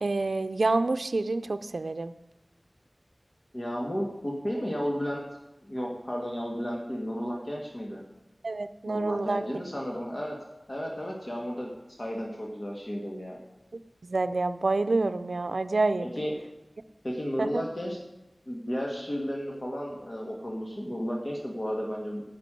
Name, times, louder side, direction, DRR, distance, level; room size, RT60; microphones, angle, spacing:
voice 1, 0.0-2.1 8.4-9.4 13.7-16.1 17.4-17.6, right 3 dB, 90° right, 10 dB, 0.5 m, -28 dB
voice 2, 3.5-5.2 5.6-8.0 8.9-10.4 10.7-11.7 12.0-13.4 16.0-16.3 17.0-18.0 18.5-22.2, equal, 45° left, -2 dB, 2.0 m, -33 dB
11.5 x 6.0 x 9.1 m, 0.95 s
wide cardioid pair, 50°, 0 cm